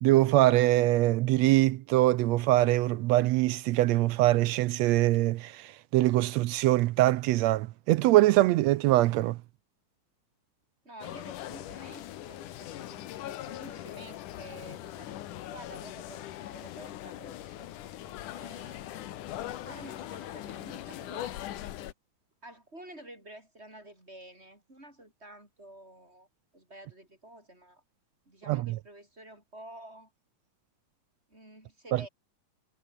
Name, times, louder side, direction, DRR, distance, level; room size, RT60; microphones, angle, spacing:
voice 1, 0.0-9.4 28.5-28.8 31.9-32.1, right 16 dB, 80° right, 1.6 m, -23 dB
voice 2, 10.8-17.7 18.3-21.6 22.4-26.3 26.5-27.8 28.3-30.1 31.3-32.1, right 1 dB, 20° right, 7.8 m, -50 dB
sound 1, 11.0-21.9, left 13 dB, 85° left, 2.7 m, -41 dB
omnidirectional pair, 3.5 m